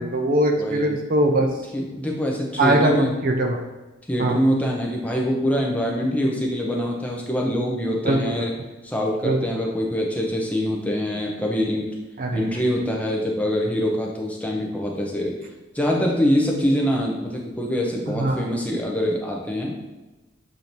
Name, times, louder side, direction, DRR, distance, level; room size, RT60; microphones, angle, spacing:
voice 1, 0.0-1.5 2.6-3.6 4.2-4.4 8.0-8.5 9.2-9.6 12.2-12.5 18.1-18.5, right 1 dB, 45° right, 3 dB, 0.4 m, -21 dB
voice 2, 0.6-1.0 1.7-3.1 4.1-8.5 8.8-11.9 12.3-15.3 15.7-19.8, equal, 5° left, -1 dB, 0.6 m, -24 dB
6.7 x 2.6 x 3.0 m, 1.1 s
head